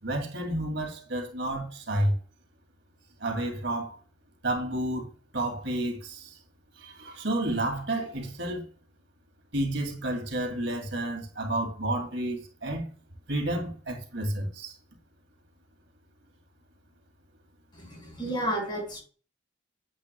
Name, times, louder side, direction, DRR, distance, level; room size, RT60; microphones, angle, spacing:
voice 1, 0.0-2.2 3.2-4.0 4.4-6.4 6.8-8.6 9.5-12.9 13.3-14.7, right 1 dB, 70° right, 2.4 m, -30 dB
voice 2, 17.7-19.0, right 1 dB, 25° left, 4.8 m, -32 dB
9.7 x 8.0 x 2.2 m
head